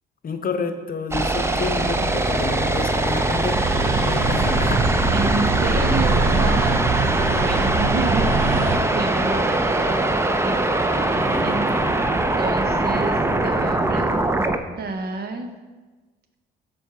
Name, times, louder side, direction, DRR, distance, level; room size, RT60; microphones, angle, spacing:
voice 1, 0.2-4.9 11.1-11.9, left 5 dB, 45° left, 8 dB, 0.8 m, -30 dB
sound 1, 1.1-14.6, right 2 dB, 15° right, 0.6 m, -22 dB
sound 2, 3.5-8.8, right 3 dB, 80° right, 1.0 m, -23 dB
voice 2, 5.1-8.7 8.9-10.1 10.4-11.7 12.4-14.5 14.8-15.5, right 3 dB, 55° right, 6 dB, 1.1 m, -30 dB
7.8 x 4.5 x 5.9 m, 1.3 s
cardioid pair, 90°, 20 cm